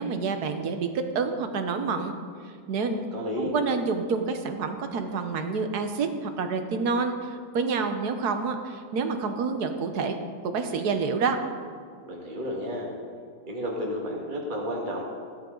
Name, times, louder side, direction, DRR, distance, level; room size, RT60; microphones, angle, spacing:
voice 1, 0.0-2.1 2.4-3.1 3.4-10.2 10.4-11.4, right 4 dB, 70° right, 7 dB, 1.5 m, -28 dB
voice 2, 3.1-3.5 12.1-12.9 13.5-15.0, equal, 30° right, -1 dB, 2.0 m, -32 dB
15.5 x 12.5 x 3.9 m, 2.1 s
omnidirectional pair, 1.8 m